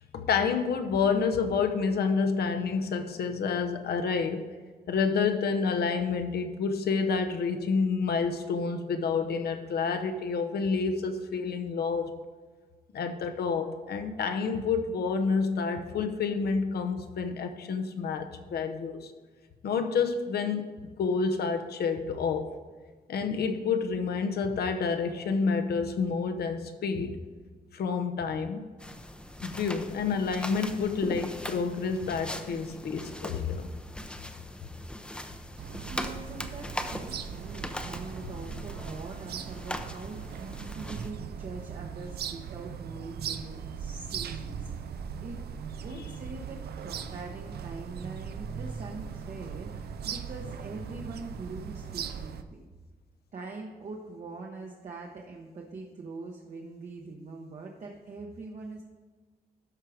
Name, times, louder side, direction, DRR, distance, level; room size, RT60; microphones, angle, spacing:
voice 1, 0.1-4.5 4.9-12.1 12.9-19.1 19.6-20.7 21.0-22.5 23.1-27.2 27.7-28.6 29.4-33.7, left 5 dB, 80° left, 6 dB, 0.9 m, -29 dB
sound 1, 28.8-41.1, left 1 dB, 5° left, 0.6 m, -40 dB
voice 2, 35.1-35.5 35.9-45.4 45.8-52.7 53.3-58.8, right 3 dB, 50° right, 0 dB, 0.9 m, -43 dB
sound 2, 35.6-52.4, right 7 dB, 80° right, 0.6 m, -39 dB
13.0 x 4.7 x 4.9 m, 1.4 s
wide cardioid pair, 150°, 16 cm